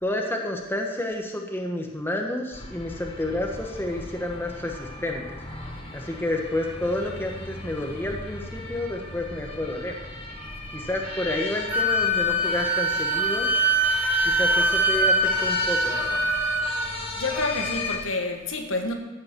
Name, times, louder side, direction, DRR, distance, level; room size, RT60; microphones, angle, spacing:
voice 1, 0.0-5.4 5.9-9.9 10.7-13.5 14.2-16.3, left 1 dB, 10° left, 1 dB, 1.3 m, -30 dB
sound 1, 2.5-18.0, left 2 dB, 30° left, 1.8 m, -35 dB
Wind instrument woodwind instrument, 11.7-16.9, right 1 dB, 10° right, 1.2 m, -23 dB
voice 2, 17.2-18.9, left 3 dB, 75° left, 3 dB, 1.7 m, -28 dB
14.0 x 8.7 x 6.1 m, 1.1 s
head